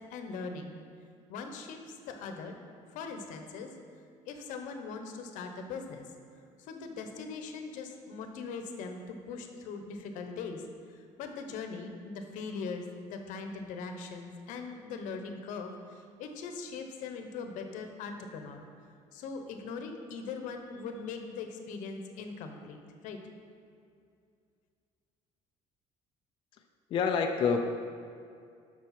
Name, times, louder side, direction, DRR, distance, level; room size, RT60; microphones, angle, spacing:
voice 1, 0.1-0.8 1.3-2.6 2.9-3.8 4.3-6.1 6.6-10.6 11.2-18.6 19.1-23.2, left 4 dB, 80° left, 5 dB, 0.9 m, -40 dB
voice 2, 26.9-27.7, left 5 dB, 40° left, 3 dB, 0.4 m, -27 dB
7.2 x 6.2 x 5.8 m, 2.4 s
cardioid pair, 170°, 13 cm